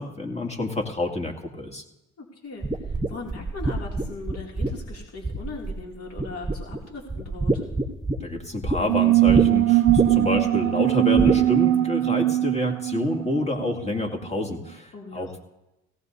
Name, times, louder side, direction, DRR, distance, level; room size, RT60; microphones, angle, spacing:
voice 1, 0.0-1.8 8.2-15.4, left 2 dB, 20° left, 2 dB, 2.2 m, -28 dB
voice 2, 2.2-7.7 14.9-15.3, left 3 dB, 50° left, -2 dB, 2.6 m, -39 dB
sound 1, 2.6-5.9 6.2-6.8 7.1-8.8 9.3-9.5 9.9-10.4 11.2-11.4, right 2 dB, 10° right, 1.2 m, -25 dB
sound 2, 8.9-14.1, right 15 dB, 90° right, 0.5 m, -21 dB
17.5 x 16.5 x 2.7 m, 0.95 s
cardioid pair, 90°, 30 cm